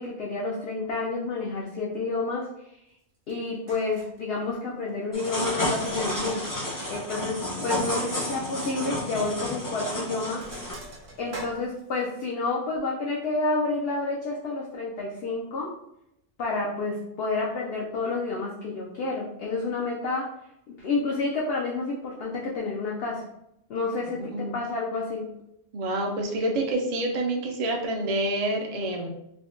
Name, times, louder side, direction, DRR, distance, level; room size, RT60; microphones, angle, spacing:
voice 1, 0.0-2.8 3.3-6.5 6.9-10.4 11.2-15.7 16.4-20.2 20.7-23.2 23.7-25.3, left 3 dB, 65° left, -3 dB, 0.7 m, -29 dB
Sink (filling or washing), 3.3-3.4 3.7-4.2 5.2-5.6 5.8-7.3 7.6-7.7 8.1-8.2 8.6-8.8 9.6-9.8 10.1-12.3, right 2 dB, 70° right, 0.9 m, -44 dB
sound 1, 5.1-10.7, left 1 dB, 20° left, 0.6 m, -31 dB
voice 2, 24.2-24.5 25.7-29.1, right 1 dB, 55° right, 1 dB, 0.4 m, -27 dB
3.4 x 2.1 x 2.5 m, 0.80 s
omnidirectional pair, 1.2 m